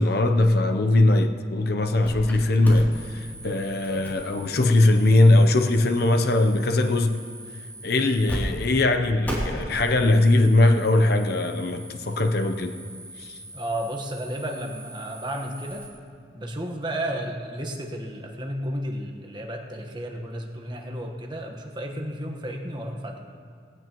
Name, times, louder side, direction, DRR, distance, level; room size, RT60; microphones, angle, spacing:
voice 1, 0.0-7.2 7.8-12.7 13.2-13.4, left 2 dB, 55° left, 0.6 m, -20 dB
sound 1, 2.0-2.4 2.6-8.4 8.6-8.7 9.2-15.9, equal, 10° left, 2.8 m, -39 dB
voice 2, 13.5-15.9 16.3-23.2, right 1 dB, 25° right, 1.2 m, -32 dB
19.5 x 16.5 x 3.0 m
head